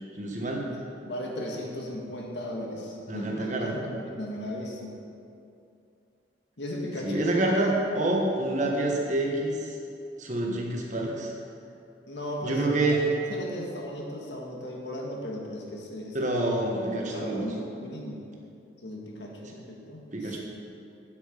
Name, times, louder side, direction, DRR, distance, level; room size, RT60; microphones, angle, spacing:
voice 1, 0.1-0.7 3.1-3.7 7.0-9.7 10.2-11.3 12.4-13.1 16.1-17.6 19.5-19.6 20.1-20.4, right 2 dB, 40° right, -1 dB, 1.5 m, -27 dB
voice 2, 1.0-4.9 6.6-7.4 12.1-16.3 16.8-18.2 18.8-20.4, left 1 dB, 65° left, -1 dB, 1.7 m, -36 dB
9.0 x 8.6 x 5.1 m, 2.6 s
head